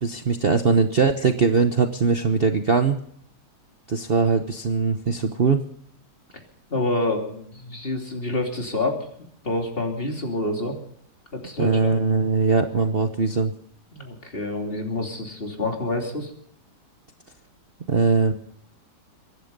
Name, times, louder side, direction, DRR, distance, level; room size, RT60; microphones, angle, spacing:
voice 1, 0.0-3.0 3.9-5.6 11.6-13.5 17.9-18.3, right 4 dB, 40° right, 7 dB, 1.0 m, -21 dB
voice 2, 6.7-9.1 9.4-10.8 11.3-11.8 13.9-16.3, left 2 dB, 35° left, 2 dB, 3.2 m, -27 dB
24.0 x 11.0 x 5.4 m, 0.67 s
omnidirectional pair, 1.8 m